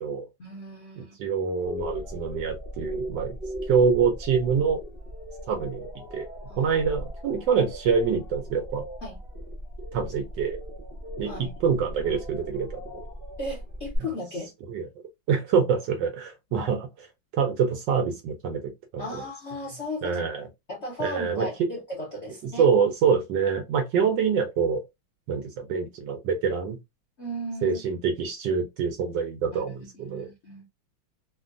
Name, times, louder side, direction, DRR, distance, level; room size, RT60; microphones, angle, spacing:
voice 1, 0.4-1.1 6.5-6.7 9.0-9.2 11.2-11.5 13.4-14.5 16.5-16.7 19.0-20.2 20.7-22.7 27.2-27.8 29.5-30.6, left 1 dB, 60° left, 0.7 m, -36 dB
voice 2, 1.0-3.4 3.7-4.8 5.5-5.8 6.1-6.3 6.6-8.8 9.9-10.6 11.2-12.8 14.7-14.9 15.3-17.1 17.3-19.2 20.0-20.4 21.0-21.5 22.6-24.8 25.3-26.8 27.6-30.3, right 6 dB, 70° right, 1.1 m, -25 dB
sound 1, 1.6-14.0, equal, 50° right, 0.6 m, -38 dB
3.4 x 2.2 x 2.4 m
omnidirectional pair, 2.3 m